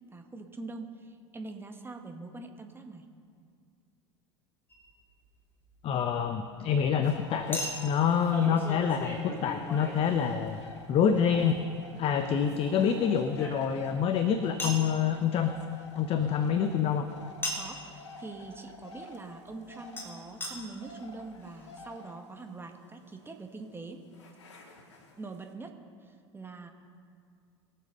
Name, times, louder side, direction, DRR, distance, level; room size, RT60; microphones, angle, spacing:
voice 1, 0.1-3.0 17.6-24.0 25.2-25.7 26.3-26.7, right 3 dB, 15° right, 4 dB, 1.6 m, -43 dB
Chink clink, 4.7-4.9 7.5-10.7 12.3-14.0 14.6-14.9 17.4-17.8 20.0-20.1 20.4-20.5 21.2-21.3 21.4-21.5, left 1 dB, 15° left, 3.5 m, -38 dB
voice 2, 5.8-10.6 10.9-11.6 12.0-15.5 15.9-17.1, left 7 dB, 40° left, 8 dB, 0.9 m, -27 dB
sound 1, 7.0-25.5, left 3 dB, 75° left, 1.7 m, -50 dB
22.5 x 7.6 x 5.5 m, 2.2 s
figure-of-eight pair, 75°, 15 cm